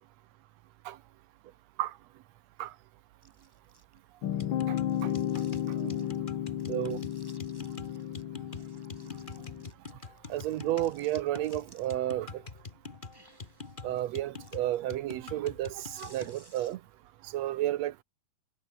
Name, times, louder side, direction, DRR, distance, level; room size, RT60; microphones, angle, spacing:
sound 1, 3.2-4.3 4.8-6.2 6.6-8.2 8.5-12.1 12.5-17.0, right 1 dB, 5° right, 4.3 m, -60 dB
sound 2, 4.2-9.7, left 10 dB, 70° left, 1.1 m, -33 dB
sound 3, 4.4-16.4, left 4 dB, 45° left, 0.6 m, -45 dB
voice 1, 5.7-6.1 6.7-7.0 10.3-12.4 13.8-16.8 17.2-18.0, right 14 dB, 75° right, 1.7 m, -32 dB
omnidirectional pair, 3.6 m